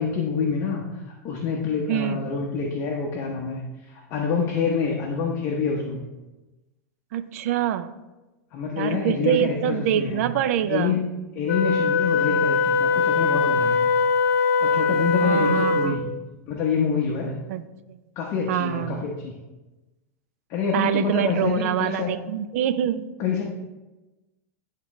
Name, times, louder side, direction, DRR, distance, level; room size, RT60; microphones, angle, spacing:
voice 1, 0.0-3.6 3.9-6.0 8.5-10.2 10.7-11.0 11.3-13.9 14.6-16.0 16.5-17.3 18.2-19.4 20.5-22.1 23.2-23.4, left 6 dB, 35° left, -1 dB, 0.9 m, -26 dB
voice 2, 1.9-2.2 7.1-7.9 8.8-10.9 15.2-16.0 17.5-17.6 17.9-18.0 18.5-19.0 20.7-23.1, right 11 dB, 65° right, 12 dB, 0.4 m, -25 dB
Wind instrument woodwind instrument, 11.5-16.1, left 4 dB, 70° left, 0.6 m, -21 dB
11.0 x 3.7 x 3.1 m, 1.1 s
supercardioid pair, 150°, 9 cm